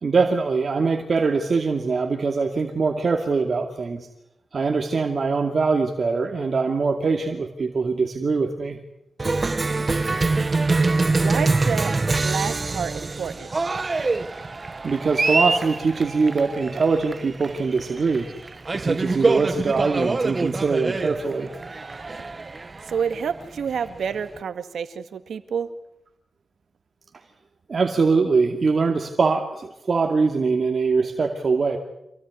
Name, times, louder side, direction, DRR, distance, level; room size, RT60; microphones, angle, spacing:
voice 1, 0.0-4.1 4.5-8.8 14.8-18.3 18.7-21.5 27.7-31.8, right 4 dB, 60° right, 4 dB, 2.4 m, -22 dB
Cheering, 9.2-24.4, right 3 dB, 40° right, 1.2 m, -25 dB
voice 2, 11.2-11.9 12.2-13.5 22.9-25.7, right 7 dB, 90° right, 10 dB, 1.8 m, -28 dB
27.0 x 18.0 x 9.8 m, 0.85 s
cardioid pair, 70°, 0 cm